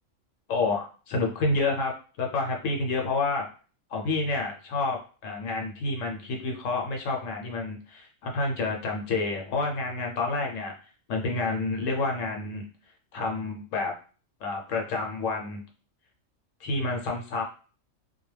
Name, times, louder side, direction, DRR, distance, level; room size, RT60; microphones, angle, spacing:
voice 1, 0.5-3.5 3.9-10.7 11.1-12.6 13.1-13.9 14.4-15.6 16.6-17.4, left 3 dB, 75° left, 1 dB, 0.9 m, -29 dB
2.2 x 2.2 x 3.1 m, 0.38 s
omnidirectional pair, 1.3 m